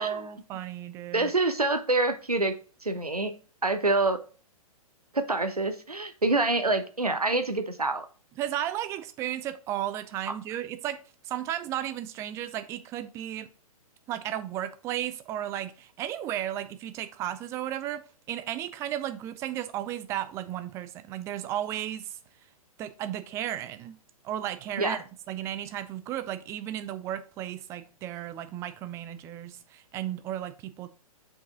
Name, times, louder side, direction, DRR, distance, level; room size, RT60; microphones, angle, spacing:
voice 1, 0.0-1.3 8.4-13.5 14.1-18.0 18.3-22.2 22.8-24.0 24.2-25.0 25.3-30.9, right 11 dB, 15° right, 0.4 m, -34 dB
voice 2, 1.1-2.5 2.8-3.3 3.6-4.2 5.1-8.1 10.3-10.4 24.8-25.0, right 2 dB, 85° right, 1.1 m, -26 dB
6.4 x 5.2 x 3.7 m
figure-of-eight pair, 115°, 19 cm